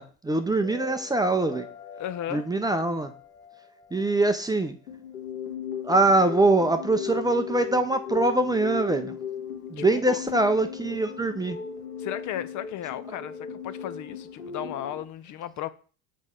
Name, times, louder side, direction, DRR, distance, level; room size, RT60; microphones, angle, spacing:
voice 1, 0.0-1.7 2.3-3.1 3.9-4.8 5.8-9.2 9.7-11.6, right 2 dB, 10° right, 0.5 m, -23 dB
sound 1, 0.6-15.0, left 7 dB, 90° left, 1.7 m, -38 dB
voice 2, 2.0-2.4 9.8-10.2 12.0-15.7, left 11 dB, 45° left, 0.5 m, -35 dB
6.2 x 5.6 x 3.7 m
hypercardioid pair, 85°, 44 cm